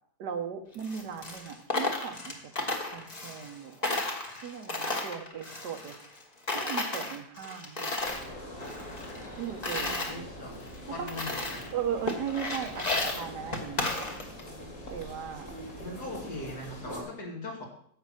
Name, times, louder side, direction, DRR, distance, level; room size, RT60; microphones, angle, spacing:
voice 1, 0.2-3.8 4.4-6.0 6.5-8.0 9.4-10.3 11.0-11.1 11.7-13.9 14.9-15.5, right 8 dB, 85° right, 6 dB, 1.6 m, -37 dB
Coin (dropping), 0.7-3.6 3.8-6.2 6.5-8.3 8.6-10.1 10.7-10.8 11.1-11.7 12.1-14.5, left 2 dB, 25° left, 1.2 m, -33 dB
sound 1, 8.0-17.0, equal, 50° left, 3.1 m, -43 dB
voice 2, 9.8-11.6 15.8-17.6, left 2 dB, 70° left, -2 dB, 3.2 m, -40 dB
11.0 x 4.3 x 7.6 m, 0.65 s
omnidirectional pair, 1.8 m